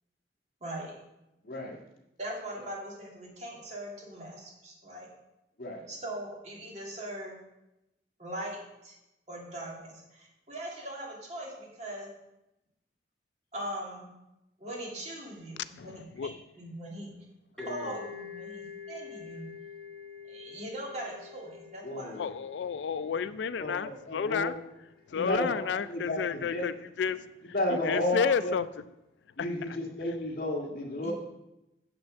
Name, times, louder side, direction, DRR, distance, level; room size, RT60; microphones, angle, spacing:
voice 1, 0.6-0.9 2.2-5.1 5.9-7.4 8.2-9.0 9.3-12.1 13.5-14.1 14.6-16.3 16.6-17.1 17.7-19.5 20.3-22.2 31.0-31.1, right 1 dB, 40° right, 2.6 m, -40 dB
voice 2, 1.4-1.8 5.6-5.9 17.6-18.0 21.8-22.3 23.6-24.5 25.1-26.7 27.5-28.5 29.4-31.1, left 1 dB, 55° left, 1.9 m, -32 dB
voice 3, 15.8-16.4 22.2-24.5 25.1-27.3 27.8-28.6 29.4-29.8, left 6 dB, 90° left, 0.4 m, -31 dB
sound 1, 17.6-25.1, left 6 dB, 5° left, 1.0 m, -47 dB
7.7 x 5.9 x 7.5 m
head